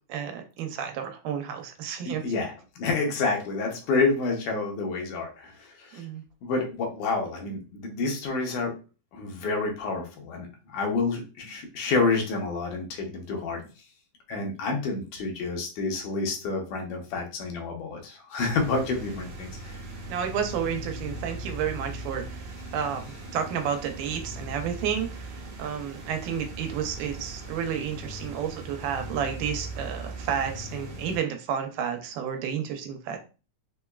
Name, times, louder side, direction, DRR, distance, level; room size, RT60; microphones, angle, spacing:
voice 1, 0.1-2.2 5.9-6.2 20.1-22.3 22.7-25.3 25.6-33.2, right 8 dB, 85° right, 6 dB, 2.2 m, -31 dB
voice 2, 2.0-6.1 6.4-8.7 9.1-13.6 14.3-19.8, left 3 dB, 85° left, 1 dB, 2.3 m, -29 dB
sound 1, 18.5-31.2, right 1 dB, 65° right, 1.2 m, -39 dB
5.5 x 2.3 x 2.3 m, 0.33 s
omnidirectional pair, 3.5 m